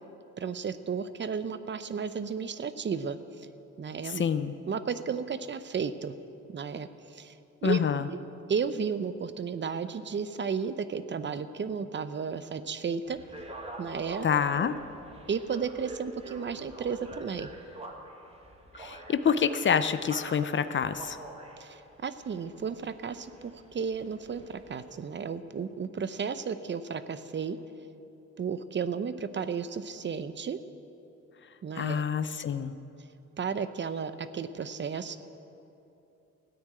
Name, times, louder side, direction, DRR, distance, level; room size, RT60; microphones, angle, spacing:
voice 1, 0.4-3.5 3.8-4.2 4.7-6.2 6.5-7.3 7.6-8.2 8.5-13.2 13.8-14.3 15.3-17.5 21.6-27.6 28.4-30.6 31.6-32.0 33.4-35.2, right 6 dB, 40° right, 12 dB, 0.7 m, -33 dB
voice 2, 4.0-4.5 7.6-8.1 14.2-14.8 18.8-21.2 31.7-32.7, left 7 dB, 40° left, 12 dB, 0.6 m, -27 dB
sound 1, 13.0-24.9, right 1 dB, 20° right, 1.8 m, -46 dB
13.5 x 9.6 x 8.9 m, 2.8 s
cardioid pair, 90°, 30 cm